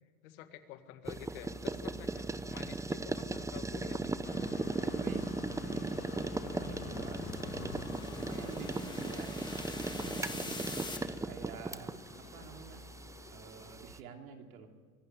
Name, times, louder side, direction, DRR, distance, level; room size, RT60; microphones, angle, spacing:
voice 1, 0.2-4.6, left 11 dB, 75° left, 9 dB, 2.0 m, -49 dB
sound 1, 1.1-14.0, right 3 dB, 5° right, 0.7 m, -38 dB
sound 2, 4.2-13.8, left 15 dB, 35° left, 0.5 m, -50 dB
voice 2, 4.9-7.9 8.2-12.9 13.3-14.7, right 6 dB, 80° right, 4 dB, 3.1 m, -49 dB
sound 3, 5.7-11.0, left 2 dB, 10° left, 2.4 m, -46 dB
24.0 x 11.5 x 9.7 m, 1.5 s
supercardioid pair, 100°, 42 cm